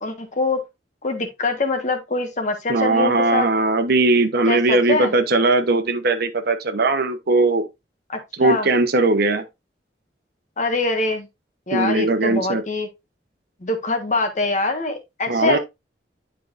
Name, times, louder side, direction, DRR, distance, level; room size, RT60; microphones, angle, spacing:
voice 1, 0.0-0.6 1.0-3.5 4.5-5.1 8.1-8.7 10.6-11.3 11.7-12.9 13.6-15.6, left 3 dB, 45° left, 1.4 m, -24 dB
voice 2, 2.7-7.6 8.4-9.4 11.7-12.6 15.3-15.6, right 2 dB, 60° right, 0.9 m, -19 dB
10.0 x 4.7 x 2.5 m
head